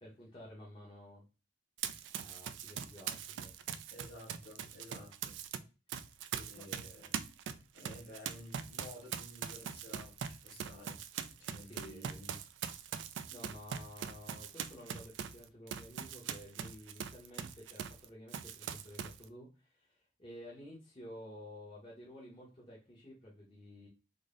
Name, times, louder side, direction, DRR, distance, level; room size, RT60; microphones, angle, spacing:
voice 1, 0.0-1.2 2.1-3.5 5.9-6.0 6.5-6.6 11.6-12.2 13.3-23.9, equal, 30° left, 0.9 m, -52 dB
Run, 1.8-5.6 5.9-18.0 18.3-19.2, right 8 dB, 85° right, 0.3 m, -42 dB
voice 2, 3.9-5.3 6.3-7.2 7.7-11.0 11.4-12.4, left 1 dB, 55° left, 1.6 m, -53 dB
3.7 x 2.1 x 3.7 m
head